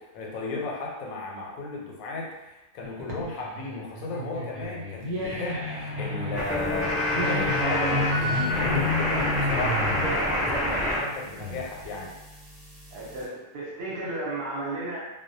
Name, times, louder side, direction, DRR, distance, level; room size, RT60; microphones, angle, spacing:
voice 1, 0.0-12.1, left 3 dB, 90° left, -2 dB, 1.0 m, -35 dB
sound 1, 2.8-11.9, left 2 dB, 75° right, 1.0 m, -31 dB
sound 2, 6.3-11.0 11.3-13.2, left 1 dB, 5° right, 0.7 m, -28 dB
voice 2, 12.9-15.0, right 2 dB, 55° right, -6 dB, 0.9 m, -33 dB
2.2 x 2.1 x 2.6 m, 1.0 s
omnidirectional pair, 1.4 m